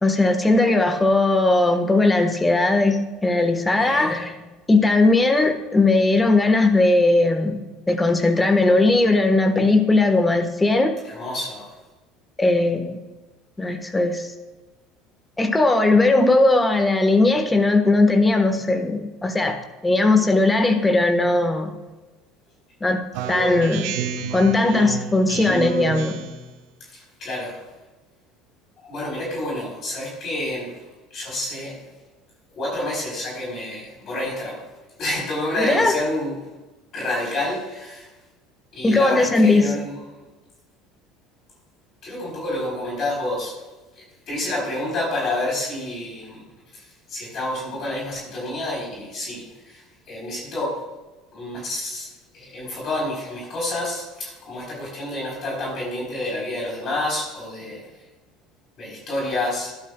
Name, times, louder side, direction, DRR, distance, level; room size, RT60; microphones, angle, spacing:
voice 1, 0.0-4.4 4.7-7.6 7.9-11.0 12.4-13.0 13.6-14.3 15.4-19.6 19.8-21.7 22.8-23.0 23.3-23.9 24.3-26.2 35.6-36.0 38.8-39.7, left 2 dB, 15° left, 7 dB, 1.3 m, -18 dB
voice 2, 3.7-4.1 11.1-11.7 26.9-27.6 28.8-30.7 31.1-31.8 32.5-34.6 35.0-36.4 36.9-38.1 38.7-40.0 42.0-43.6 44.3-46.4 46.7-50.7 51.3-52.1 52.3-57.8 58.8-59.7, left 1 dB, 45° left, -2 dB, 3.9 m, -29 dB
Speech synthesizer, 23.1-26.5, right 7 dB, 65° right, 0.8 m, -29 dB
14.0 x 11.5 x 2.3 m, 1.2 s
hypercardioid pair, 70°, 0 cm